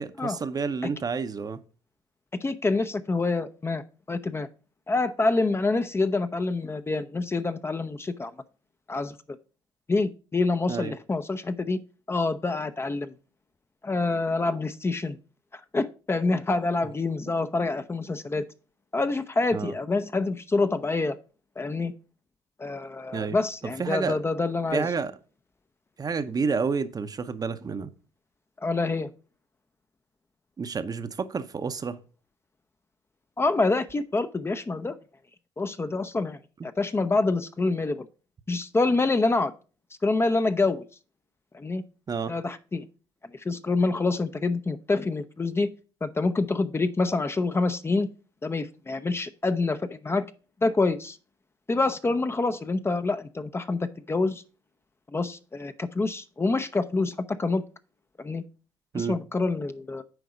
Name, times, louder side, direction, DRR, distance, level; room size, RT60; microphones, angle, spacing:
voice 1, 0.0-1.6 10.7-11.0 19.5-19.7 23.1-23.4 23.8-24.2 24.7-25.1 26.0-27.9 30.6-32.0 42.1-42.3 58.9-59.2, right 5 dB, 35° right, 0.7 m, -29 dB
voice 2, 2.4-4.5 4.9-8.3 8.9-9.2 9.9-11.8 12.1-13.1 13.8-15.2 15.5-18.4 18.9-21.2 21.6-21.9 22.6-24.9 28.6-29.1 33.4-35.0 35.6-38.1 38.5-39.5 40.0-40.8 41.5-41.8 42.3-42.8 43.4-45.7 46.0-48.1 48.4-50.3 50.6-51.2 51.7-54.4 55.1-57.6 58.2-58.4 58.9-60.0, left 3 dB, 20° left, 0.6 m, -26 dB
7.9 x 4.6 x 4.9 m
supercardioid pair, 65°, 12 cm